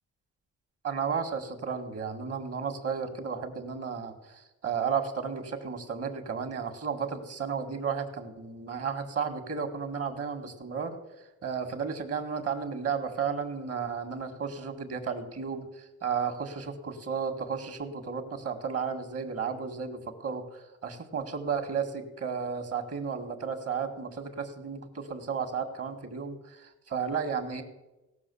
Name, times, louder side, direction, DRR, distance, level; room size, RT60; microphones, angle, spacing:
voice 1, 0.8-11.0 11.4-27.6, right 6 dB, 50° right, 7 dB, 1.9 m, -33 dB
17.0 x 6.2 x 7.1 m, 1.0 s
cardioid pair, 90°, 30 cm